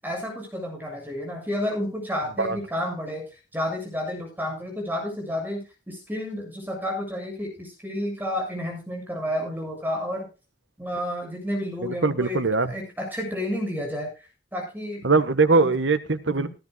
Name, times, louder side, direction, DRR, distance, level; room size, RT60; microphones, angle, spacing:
voice 1, 0.0-10.3 10.8-14.1 14.5-15.2 15.5-15.7 16.3-16.5, left 1 dB, 10° right, 7.4 m, -31 dB
voice 2, 11.8-12.7 15.0-16.5, right 3 dB, 85° right, 1.4 m, -21 dB
17.0 x 14.0 x 2.3 m
head